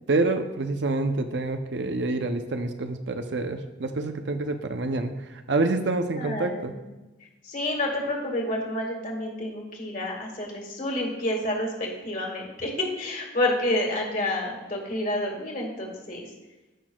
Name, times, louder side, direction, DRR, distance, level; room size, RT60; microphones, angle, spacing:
voice 1, 0.1-5.1 5.5-6.7, right 2 dB, 70° right, 7 dB, 0.6 m, -27 dB
voice 2, 6.1-6.9 7.4-16.3, left 1 dB, 45° left, 0 dB, 1.9 m, -29 dB
14.5 x 6.1 x 2.3 m, 1.1 s
head